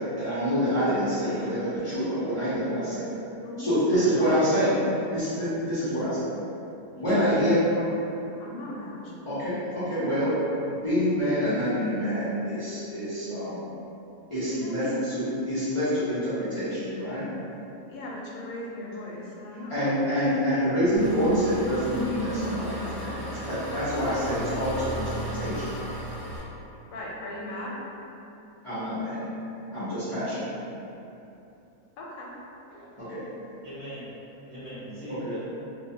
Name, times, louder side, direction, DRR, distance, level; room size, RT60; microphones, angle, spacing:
voice 1, 0.0-3.1 3.6-4.8 5.1-6.3 7.0-7.6 9.2-10.4 10.7-13.7 14.3-17.3 19.5-25.7 28.6-29.3 29.7-30.5 33.0-33.2 35.2-35.3, equal, 35° left, -14 dB, 0.5 m, -27 dB
voice 2, 3.3-4.3 6.9-7.9 8.4-9.3 14.4-14.9 17.9-20.9 26.9-27.7 32.0-32.3, left 1 dB, 80° left, -4 dB, 1.0 m, -38 dB
Engine, 21.0-26.4, right 1 dB, 5° right, 1.0 m, -36 dB
voice 3, 32.7-33.1 33.6-34.1 34.5-35.4, right 1 dB, 60° right, -13 dB, 1.0 m, -40 dB
2.8 x 2.2 x 2.7 m, 2.9 s
omnidirectional pair, 1.5 m